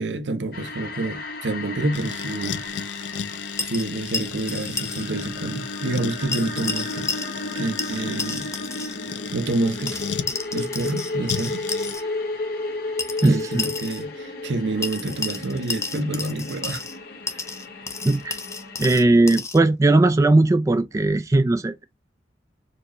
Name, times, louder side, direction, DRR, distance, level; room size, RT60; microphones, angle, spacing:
voice 1, 0.0-2.6 3.6-7.1 7.5-8.5 9.3-10.0 10.5-11.6 13.2-16.8, right 2 dB, 80° right, 0.9 m, -28 dB
sound 1, 0.5-19.1, left 2 dB, 55° left, 1.2 m, -34 dB
sound 2, 1.9-10.3 11.3-12.0, left 6 dB, 80° left, 0.5 m, -34 dB
sound 3, 3.6-5.1 5.3-5.4 6.3-7.5 7.8-9.0 9.9-12.0 13.0-14.0 14.8-17.0 17.3-19.6, left 4 dB, 15° left, 0.6 m, -32 dB
voice 2, 13.2-13.7 18.0-18.4 18.8-21.8, right 2 dB, 20° right, 0.3 m, -18 dB
4.5 x 3.0 x 2.6 m
head